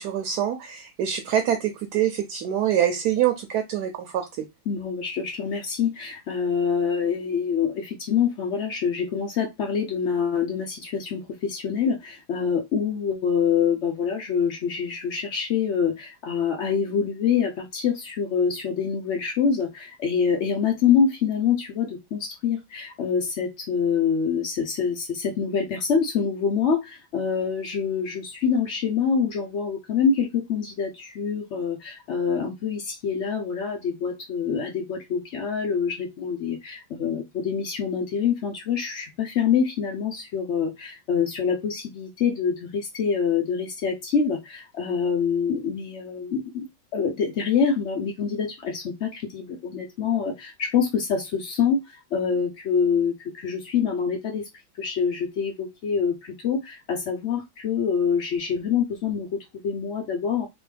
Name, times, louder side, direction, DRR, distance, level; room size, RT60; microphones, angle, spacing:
voice 1, 0.0-4.4, right 10 dB, 70° right, 1.1 m, -25 dB
voice 2, 4.7-46.7 46.9-54.4 54.8-60.5, left 6 dB, 80° left, 0.6 m, -25 dB
3.4 x 3.0 x 3.2 m
omnidirectional pair, 2.0 m